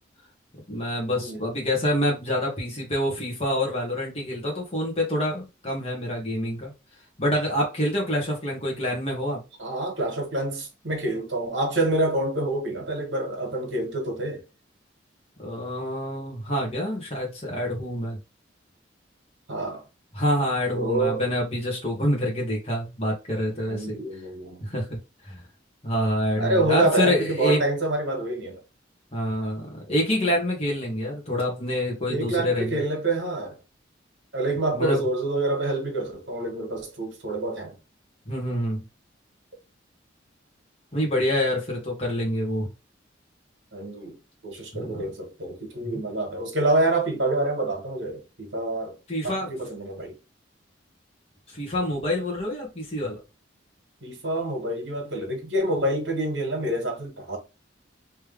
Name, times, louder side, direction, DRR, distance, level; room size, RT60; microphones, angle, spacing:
voice 1, 0.5-6.7 7.2-9.4 15.4-18.2 20.1-24.0 24.6-24.9 25.2-25.4 25.8-27.6 29.1-32.8 34.7-35.0 38.3-38.8 40.9-42.7 44.7-45.0 45.8-46.0 49.1-49.5 51.5-53.2, left 1 dB, 30° left, 1.3 m, -27 dB
voice 2, 9.6-14.4 19.5-19.8 20.7-21.2 23.7-24.6 26.4-28.6 32.1-33.6 34.3-37.7 43.7-44.2 44.4-48.9 49.2-50.1 54.0-57.4, right 2 dB, 70° right, 1.6 m, -27 dB
3.4 x 3.2 x 3.3 m
head